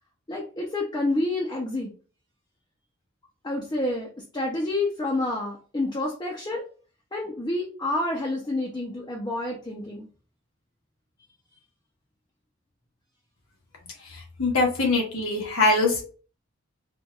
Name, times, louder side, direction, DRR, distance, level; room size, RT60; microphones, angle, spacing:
voice 1, 0.3-1.9 3.4-6.6 7.1-10.1, left 2 dB, 20° left, -2 dB, 0.5 m, -28 dB
voice 2, 14.4-16.0, left 2 dB, 90° left, 0 dB, 1.2 m, -22 dB
4.1 x 2.4 x 2.3 m, 0.39 s
head